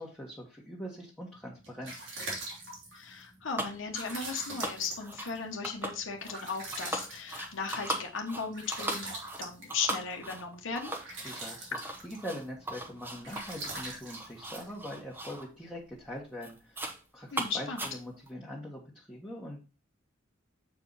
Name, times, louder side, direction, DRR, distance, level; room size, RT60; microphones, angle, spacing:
voice 1, 0.0-2.1 11.2-19.6, equal, 5° left, -5 dB, 1.4 m, -43 dB
sound 1, 1.4-15.4, right 2 dB, 80° right, 2.9 m, -44 dB
voice 2, 2.9-10.9 17.3-17.9, left 5 dB, 80° left, 1 dB, 1.0 m, -36 dB
sound 2, 3.6-3.8 4.0-4.3 4.6-5.3 5.6-6.4 6.7-15.5 15.9-16.1 16.4-17.0 17.3-18.3, right 1 dB, 10° right, 0.9 m, -39 dB
7.5 x 4.6 x 4.0 m, 0.32 s
head